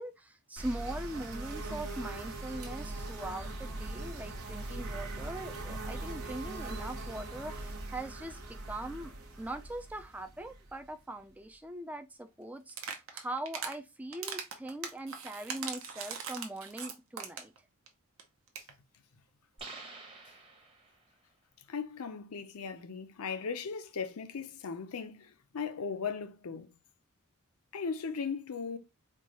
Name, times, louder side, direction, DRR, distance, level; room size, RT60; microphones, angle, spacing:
voice 1, 0.0-8.4 8.7-9.1 9.4-17.5, right 1 dB, 5° right, 0.3 m, -41 dB
sound 1, 0.6-11.2, right 2 dB, 80° right, 1.3 m, -41 dB
sound 2, 12.7-13.8 14.1-17.6 17.9-18.0 18.2-18.3 18.5-18.7, right 6 dB, 65° right, 0.7 m, -40 dB
sound 3, 19.6-21.1, right 3 dB, 25° right, 0.9 m, -48 dB
voice 2, 21.7-26.7 27.7-28.8, left 5 dB, 80° left, 0.6 m, -38 dB
4.5 x 2.3 x 2.9 m
head